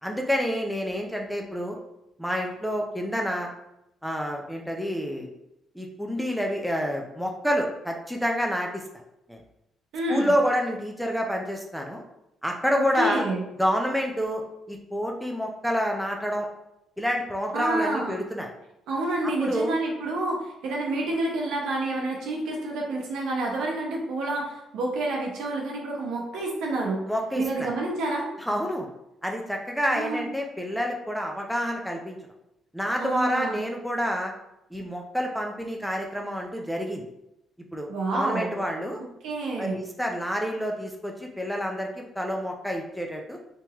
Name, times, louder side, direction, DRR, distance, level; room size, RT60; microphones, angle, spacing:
voice 1, 0.0-1.8 2.2-3.5 4.0-5.3 5.7-8.8 9.3-9.4 10.1-12.0 12.4-13.2 13.6-14.4 14.7-16.5 17.0-18.5 19.2-19.7 27.1-27.7 28.4-28.9 29.2-32.2 32.7-34.3 34.7-37.0 37.7-39.0 39.6-43.4, equal, ahead, 1 dB, 0.6 m, -28 dB
voice 2, 9.9-10.3 13.0-13.4 17.5-18.2 18.9-27.0 27.4-28.3 29.9-30.3 33.0-33.6 37.9-38.5 39.2-39.8, right 2 dB, 85° right, -1 dB, 0.9 m, -28 dB
3.5 x 2.9 x 3.0 m, 0.86 s
cardioid pair, 90°, 0 cm